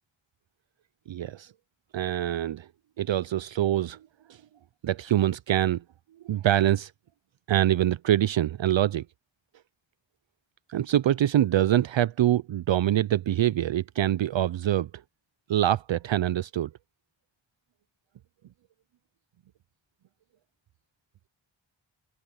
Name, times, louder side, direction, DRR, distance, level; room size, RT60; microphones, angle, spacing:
voice 1, 1.1-1.5 1.9-2.7 3.0-4.0 4.8-5.8 6.2-6.9 7.5-9.0 10.7-14.9 15.5-16.7, right 12 dB, 70° right, 0.5 m, -24 dB
wide cardioid pair, 65°, 48 cm